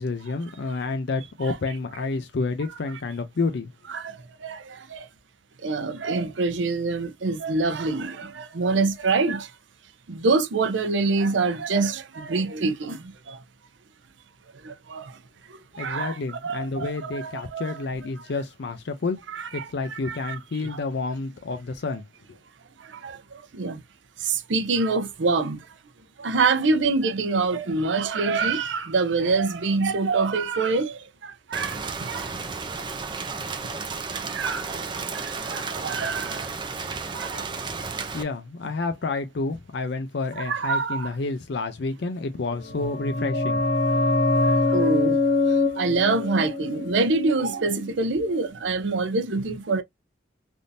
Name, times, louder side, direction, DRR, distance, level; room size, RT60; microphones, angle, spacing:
voice 1, 0.0-3.7 15.8-19.2 19.5-22.0 38.1-43.6, left 3 dB, 65° left, 0.5 m, -29 dB
voice 2, 5.6-9.5 10.1-13.4 14.7-15.0 15.8-17.8 19.3-20.4 20.6-20.8 23.0-23.2 23.5-23.8 24.3-25.6 26.2-32.3 34.3-34.8 35.2-36.4 37.1-37.4 40.4-41.1 44.7-45.2 45.8-49.8, right 3 dB, 75° right, 0.6 m, -25 dB
Rain, 31.5-38.2, right 4 dB, 25° right, 0.5 m, -32 dB
sound 1, 42.6-48.0 48.3-48.4, left 2 dB, 80° left, 0.9 m, -24 dB
3.4 x 2.6 x 2.6 m
head